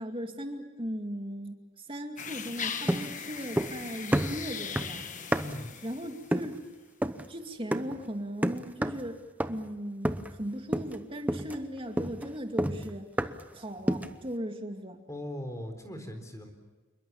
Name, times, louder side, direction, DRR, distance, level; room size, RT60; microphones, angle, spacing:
voice 1, 0.0-5.4 5.8-6.6 7.3-9.2 9.5-13.1 13.5-15.0, equal, 25° right, 4 dB, 2.4 m, -38 dB
sound 1, 2.2-6.5, left 7 dB, 40° left, 1.3 m, -39 dB
sound 2, 2.9-3.8 4.1-5.7 6.3-6.6 7.0-7.3 7.7-8.0 8.4-9.1 9.4-9.7 10.0-10.4 10.7-11.0 11.3-13.5 13.9-14.2, right 1 dB, 10° right, 0.8 m, -30 dB
voice 2, 5.4-5.7 15.1-16.5, left 1 dB, 15° left, 6 dB, 4.0 m, -39 dB
28.0 x 22.0 x 7.2 m, 1.2 s
head